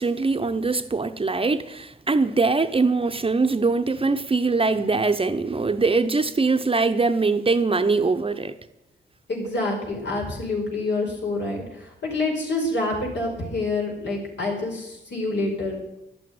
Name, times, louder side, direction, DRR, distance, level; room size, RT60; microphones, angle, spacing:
voice 1, 0.0-8.5, right 3 dB, 30° right, 0.8 m, -22 dB
voice 2, 9.3-15.7, left 2 dB, 75° left, 4.8 m, -27 dB
11.5 x 8.5 x 9.3 m
cardioid pair, 65°, 18 cm